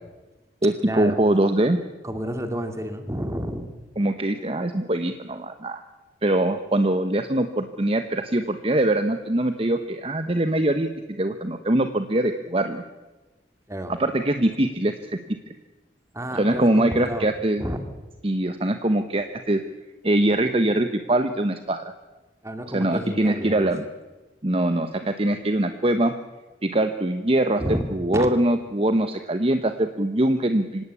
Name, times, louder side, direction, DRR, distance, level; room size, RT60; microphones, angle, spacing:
voice 1, 0.6-1.8 4.0-5.8 6.2-12.8 13.9-15.2 16.3-17.6 18.2-19.6 20.0-21.9 22.7-23.9 24.4-26.1 26.6-30.8, right 1 dB, 35° right, 8 dB, 1.1 m, -23 dB
voice 2, 2.0-3.7 13.7-13.9 16.1-17.3 17.6-17.8 22.4-23.7 27.6-27.8 28.1-28.3, equal, 15° right, 7 dB, 2.3 m, -30 dB
25.5 x 17.5 x 8.5 m, 1.2 s
head